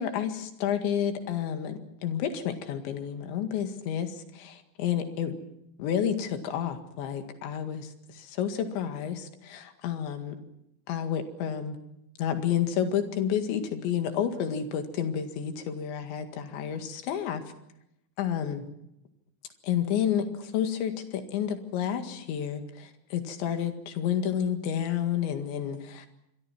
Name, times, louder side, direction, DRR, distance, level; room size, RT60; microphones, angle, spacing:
voice 1, 0.0-5.4 5.8-7.9 8.1-10.4 10.9-11.8 12.2-17.4 18.2-18.7 19.6-26.1, left 9 dB, 70° left, 7 dB, 4.1 m, -30 dB
26.5 x 23.5 x 6.1 m, 0.79 s
omnidirectional pair, 5.7 m